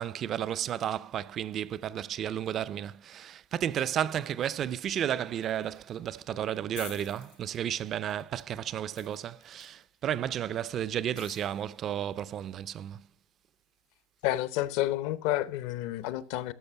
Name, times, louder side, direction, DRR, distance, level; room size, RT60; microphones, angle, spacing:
voice 1, 0.0-13.0, right 10 dB, 35° right, 0.4 m, -33 dB
sound 1, 5.4-6.2 6.4-6.5 6.7-9.8 11.2-11.7, left 15 dB, 85° left, 1.6 m, -49 dB
voice 2, 14.2-16.5, left 15 dB, 65° left, 0.8 m, -30 dB
12.5 x 6.4 x 5.7 m
cardioid pair, 155°, 0 cm